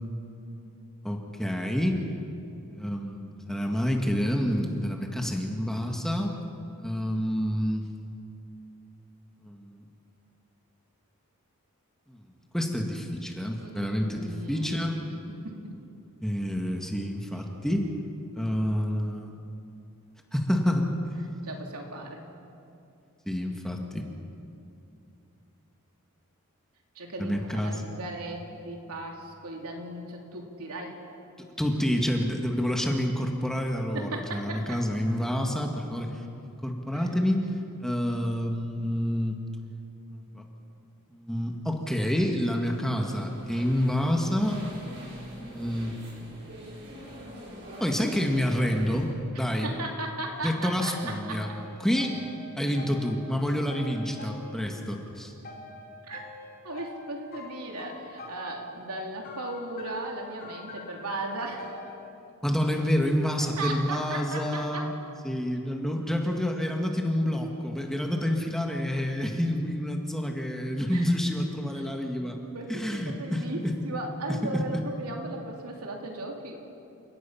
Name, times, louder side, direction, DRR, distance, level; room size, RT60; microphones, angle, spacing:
voice 1, 1.0-2.0 2.7-6.4 6.8-7.9 9.4-9.8 12.1-12.2 12.5-15.0 16.2-17.9 18.3-19.3 20.3-20.9 23.3-24.1 27.2-27.8 31.6-37.4 37.8-39.4 40.3-40.4 41.1-46.0 47.8-49.7 50.4-51.5 51.8-52.2 52.6-55.3 62.4-64.9 65.2-72.4 72.7-73.7 74.3-74.8, equal, ahead, 1 dB, 1.7 m, -28 dB
voice 2, 13.6-14.8 15.4-15.7 21.4-22.2 26.9-31.0 33.9-34.8 36.9-37.1 49.3-51.4 56.0-56.3 56.6-61.7 63.6-64.9 70.9-71.1 71.8-71.9 72.5-76.6, right 2 dB, 85° right, 1 dB, 3.1 m, -37 dB
sound 1, 42.5-49.0, equal, 50° right, 5.9 m, -45 dB
sound 2, 50.3-55.1 55.4-62.0, left 2 dB, 40° left, 2.8 m, -46 dB
29.5 x 17.5 x 5.8 m, 2.7 s
head